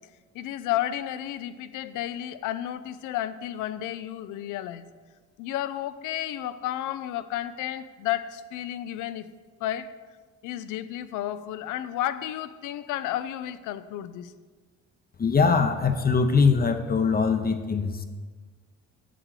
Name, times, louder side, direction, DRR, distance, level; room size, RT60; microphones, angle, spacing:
voice 1, 0.3-4.9 5.4-9.3 9.6-9.9 10.4-14.3, left 12 dB, 90° left, 13 dB, 0.5 m, -32 dB
voice 2, 15.2-18.1, left 5 dB, 30° left, 7 dB, 0.6 m, -22 dB
7.7 x 6.6 x 4.7 m, 1.4 s
cardioid pair, 90°, 30 cm